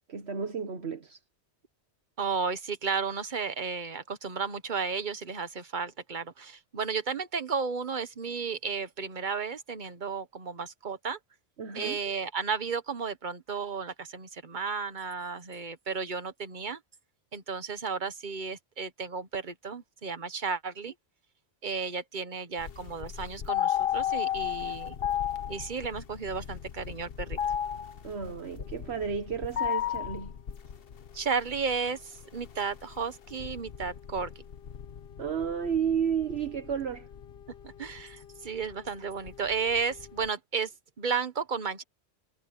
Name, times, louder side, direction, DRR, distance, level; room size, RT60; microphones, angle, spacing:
voice 1, 0.1-1.2 11.6-12.0 28.0-30.3 35.2-37.1, right 7 dB, 70° right, 1.5 m, -32 dB
voice 2, 2.2-11.2 11.7-16.8 17.3-20.9 21.6-24.9 25.5-27.4 31.1-34.3 37.6-40.7 41.0-41.8, right 5 dB, 45° right, 1.3 m, -33 dB
sound 1, 22.6-40.3, left 10 dB, 60° left, 1.1 m, -35 dB
omnidirectional pair, 1.1 m